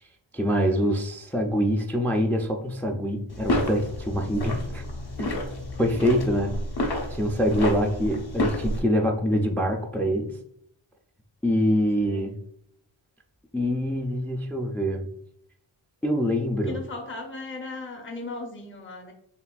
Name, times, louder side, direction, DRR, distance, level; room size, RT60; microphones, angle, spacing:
voice 1, 0.3-4.8 5.2-5.3 5.8-6.6 7.1-10.3 11.4-12.3 13.5-15.1 16.0-16.8, equal, 5° left, 3 dB, 0.3 m, -25 dB
sound 1, 3.3-8.8, left 1 dB, 50° left, 0.9 m, -30 dB
voice 2, 12.0-12.4 16.6-19.1, left 2 dB, 25° left, 1 dB, 0.7 m, -37 dB
6.7 x 2.4 x 2.4 m, 0.70 s
wide cardioid pair, 140°, 49 cm